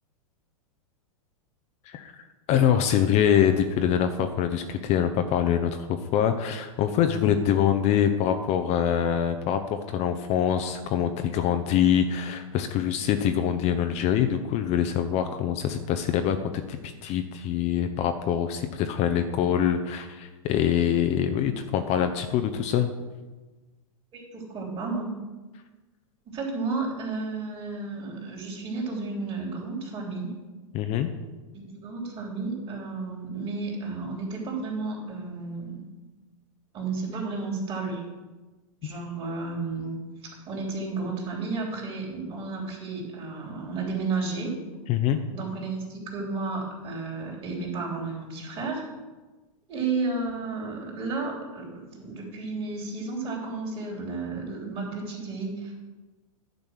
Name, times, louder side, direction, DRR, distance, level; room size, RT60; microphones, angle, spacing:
voice 1, 2.5-16.4 16.7-22.9 30.7-31.1 44.9-45.2, left 9 dB, 35° left, 7 dB, 0.7 m, -24 dB
voice 2, 24.1-25.1 26.2-30.3 31.5-35.8 36.7-38.0 38.8-40.0 40.5-44.5 45.3-48.8 49.7-55.8, right 3 dB, 30° right, -2 dB, 3.4 m, -32 dB
10.5 x 5.2 x 6.3 m, 1.2 s
hypercardioid pair, 105°, 18 cm